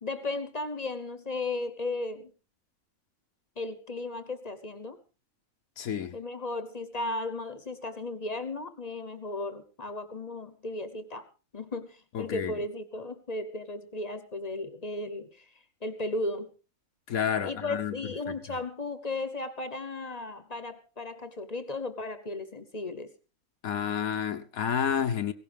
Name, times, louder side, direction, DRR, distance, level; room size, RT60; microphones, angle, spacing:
voice 1, 0.0-2.3 3.6-5.0 6.1-11.3 11.5-15.4 15.8-16.5 17.4-23.1, left 2 dB, 30° left, 1.1 m, -35 dB
voice 2, 5.8-6.2 12.1-12.5 17.1-18.0 18.3-18.4 23.6-25.3, left 8 dB, 80° left, 1.4 m, -30 dB
17.0 x 16.5 x 3.5 m
omnidirectional pair, 1.5 m